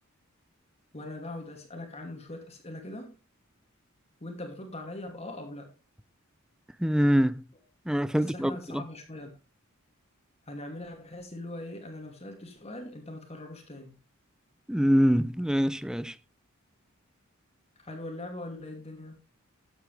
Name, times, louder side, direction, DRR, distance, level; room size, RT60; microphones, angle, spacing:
voice 1, 0.9-3.2 4.2-5.7 8.1-9.3 10.5-13.9 17.8-19.2, left 1 dB, 30° left, 2.5 m, -41 dB
voice 2, 6.8-7.4 7.9-8.8 14.7-16.2, equal, 5° right, 0.5 m, -24 dB
13.5 x 8.3 x 3.3 m
head